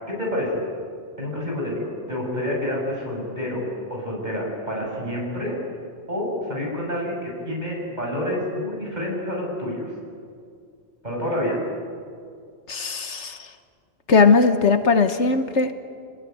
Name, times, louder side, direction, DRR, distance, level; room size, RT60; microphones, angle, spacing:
voice 1, 0.1-0.5 1.2-3.6 3.9-5.5 6.1-9.9 11.0-11.6, left 1 dB, 40° right, -2 dB, 7.6 m, -28 dB
voice 2, 12.7-13.4 14.1-15.7, left 4 dB, 75° left, 8 dB, 1.6 m, -18 dB
28.0 x 20.0 x 9.5 m, 2.2 s
omnidirectional pair, 1.2 m